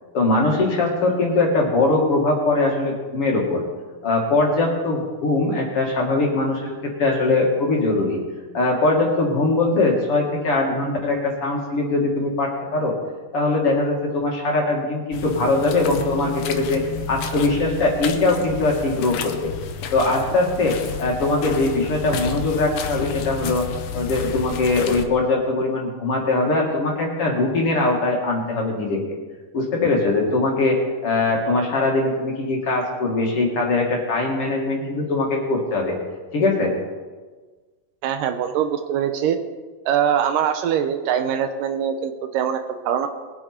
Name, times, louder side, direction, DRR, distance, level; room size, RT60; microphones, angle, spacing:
voice 1, 0.1-3.6 4.0-8.2 8.5-13.0 13.3-19.5 19.9-23.7 23.9-29.0 29.5-36.0 36.3-36.7, left 2 dB, 45° left, -1 dB, 2.5 m, -21 dB
sound 1, 15.1-25.0, left 6 dB, 85° left, 2.8 m, -31 dB
voice 2, 38.0-39.4 39.9-43.1, right 9 dB, 75° right, 7 dB, 2.3 m, -23 dB
20.5 x 9.1 x 4.4 m, 1.4 s
omnidirectional pair, 4.0 m